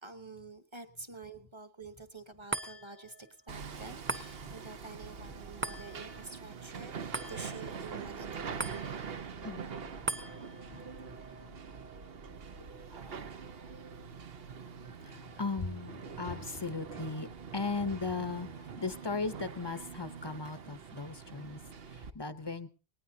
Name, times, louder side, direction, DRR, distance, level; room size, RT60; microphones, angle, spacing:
voice 1, 0.0-9.3 10.7-10.8, right 3 dB, 30° right, 1.2 m, -48 dB
sound 1, 2.5-15.1 15.5-15.6, right 2 dB, 15° right, 0.8 m, -44 dB
Hammer, 3.5-22.1, right 6 dB, 70° right, 1.1 m, -44 dB
voice 2, 9.3-10.7 11.3-11.5 12.6-13.5 14.9-22.7, left 4 dB, 25° left, 0.8 m, -38 dB
19.0 x 19.0 x 2.8 m
omnidirectional pair, 1.0 m